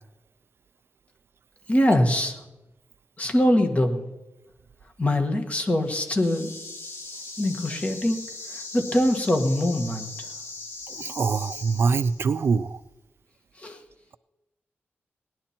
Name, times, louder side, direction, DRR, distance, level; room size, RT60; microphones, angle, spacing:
voice 1, 1.7-2.4 3.2-4.0 5.0-6.5 7.4-10.3 13.6-13.8, left 1 dB, 30° left, 4 dB, 1.6 m, -23 dB
sound 1, 5.7-12.4, left 3 dB, 75° left, 1.5 m, -40 dB
voice 2, 11.0-12.8, right 5 dB, 60° right, 15 dB, 0.4 m, -24 dB
18.5 x 11.0 x 4.3 m, 1.0 s
wide cardioid pair, 135°, 5 cm